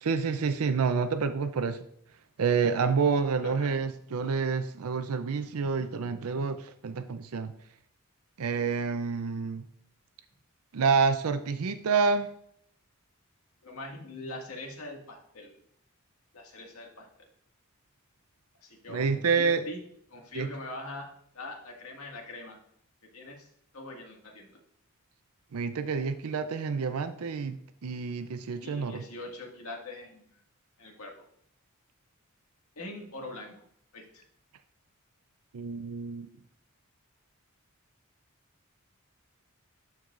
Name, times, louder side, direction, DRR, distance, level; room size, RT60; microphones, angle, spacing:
voice 1, 0.0-1.8 2.4-7.5 8.4-9.6 10.7-12.3 18.9-19.6 20.3-20.5 25.5-29.0 35.5-36.3, right 5 dB, 85° right, 10 dB, 0.5 m, -28 dB
voice 2, 3.4-3.8 13.6-15.5 16.3-17.1 18.6-19.8 20.1-22.6 23.1-24.6 28.6-30.4 30.8-31.2 32.8-33.6 33.9-34.2, left 2 dB, 75° left, 1 dB, 1.9 m, -43 dB
12.0 x 4.6 x 2.5 m, 0.67 s
head